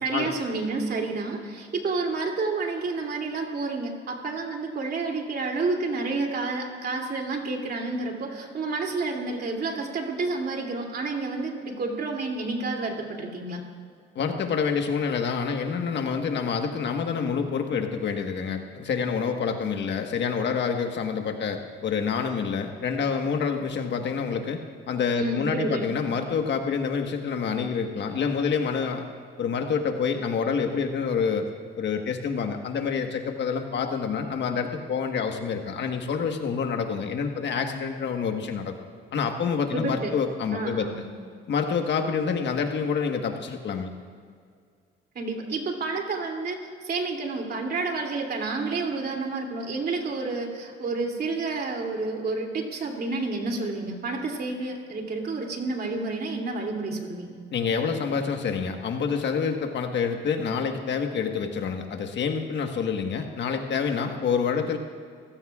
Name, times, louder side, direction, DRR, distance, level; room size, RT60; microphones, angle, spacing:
voice 1, 0.0-13.6 25.2-25.9 39.7-40.1 40.5-41.0 45.1-46.6 46.8-57.4, right 3 dB, 50° right, 1 dB, 2.8 m, -30 dB
voice 2, 14.1-24.6 24.9-29.0 29.4-31.5 31.7-38.7 39.1-40.9 41.5-43.9 57.5-64.8, left 6 dB, 65° left, 5 dB, 1.4 m, -27 dB
24.5 x 16.0 x 2.4 m, 2.1 s
cardioid pair, 90°, 20 cm